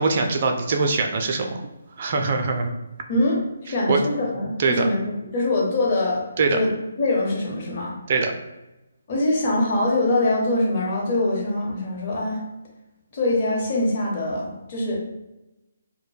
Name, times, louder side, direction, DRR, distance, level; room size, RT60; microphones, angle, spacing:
voice 1, 0.0-1.6 2.0-2.7 3.9-4.0 4.6-4.9 6.4-6.6 8.1-8.3, right 4 dB, 45° right, 4 dB, 0.3 m, -22 dB
voice 2, 3.1-6.2 6.5-7.9 9.1-12.4 13.1-15.1, left 2 dB, 40° left, -3 dB, 0.8 m, -23 dB
2.1 x 2.1 x 3.2 m, 1.0 s
figure-of-eight pair, 150°, 0 cm